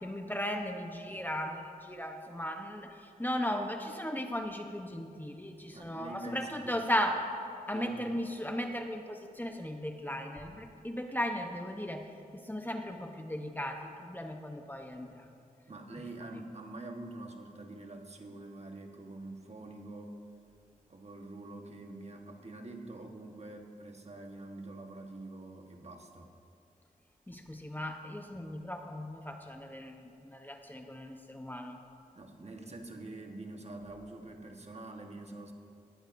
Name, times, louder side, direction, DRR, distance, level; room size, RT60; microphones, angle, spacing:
voice 1, 0.0-7.3 7.7-15.3 16.3-16.4 27.3-31.8, equal, 10° left, 4 dB, 0.9 m, -37 dB
voice 2, 5.7-6.8 7.7-8.2 15.7-20.2 20.9-26.3 32.1-35.5, right 2 dB, 45° right, 3 dB, 1.3 m, -45 dB
19.5 x 14.5 x 2.6 m, 2.5 s
wide cardioid pair, 70°, 15 cm